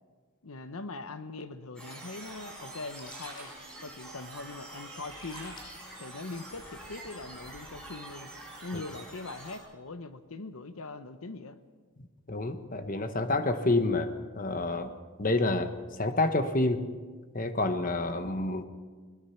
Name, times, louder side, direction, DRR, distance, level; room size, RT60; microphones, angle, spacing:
voice 1, 0.4-3.5 3.8-5.6 6.0-8.3 8.6-11.6, left 3 dB, 75° left, 11 dB, 1.0 m, -41 dB
sound 1, 1.8-9.6, right 2 dB, 5° left, 5.0 m, -46 dB
Sink (filling or washing), 2.1-7.8, equal, 20° left, 6.6 m, -52 dB
voice 2, 12.3-14.9 15.2-16.8 17.3-18.7, left 2 dB, 40° left, 9 dB, 1.1 m, -28 dB
21.5 x 21.5 x 5.8 m, 1.5 s
head